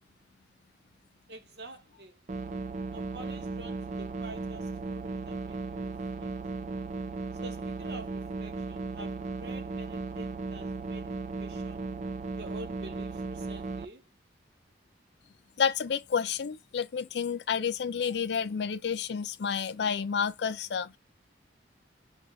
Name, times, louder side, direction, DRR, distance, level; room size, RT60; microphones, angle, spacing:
voice 1, 1.3-2.2 2.9-6.4 7.4-11.8 12.4-14.1, right 2 dB, 60° right, 0.9 m, -48 dB
sound 1, 2.3-13.9, right 3 dB, 40° right, 0.4 m, -36 dB
voice 2, 15.6-21.0, left 6 dB, 65° left, 0.4 m, -30 dB
5.4 x 2.4 x 3.8 m
head